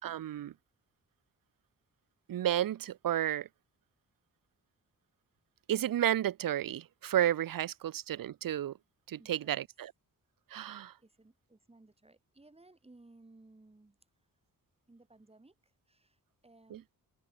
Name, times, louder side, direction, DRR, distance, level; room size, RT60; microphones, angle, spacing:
voice 1, 0.0-0.5 2.3-3.5 5.7-8.7 9.1-9.9 10.5-10.9 16.7-16.8, right 11 dB, 70° right, 0.6 m, -32 dB
voice 2, 9.2-9.7 11.0-14.0 14.9-16.8, right 2 dB, 15° right, 4.6 m, -60 dB
wide cardioid pair, 140°, 35 cm